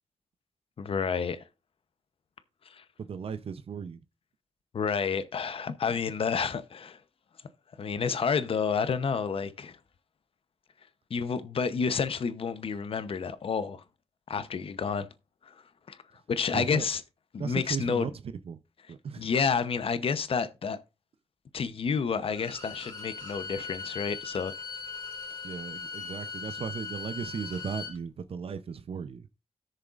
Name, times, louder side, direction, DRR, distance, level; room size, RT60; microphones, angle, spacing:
voice 1, 0.8-1.5 2.7-2.8 4.7-7.0 7.8-9.8 11.1-13.8 14.3-15.1 15.4-15.5 15.9-16.0 16.3-17.0 17.3-18.1 19.2-20.8 21.5-24.5, left 6 dB, 65° left, 0.7 m, -30 dB
voice 2, 3.0-4.0 16.5-16.8 17.4-18.1 18.5-18.6 18.9-19.3 25.4-29.3, right 6 dB, 70° right, 0.6 m, -36 dB
Bowed string instrument, 22.3-27.9, left 4 dB, 35° left, 3.7 m, -40 dB
17.0 x 6.6 x 2.4 m
wide cardioid pair, 115°, 10 cm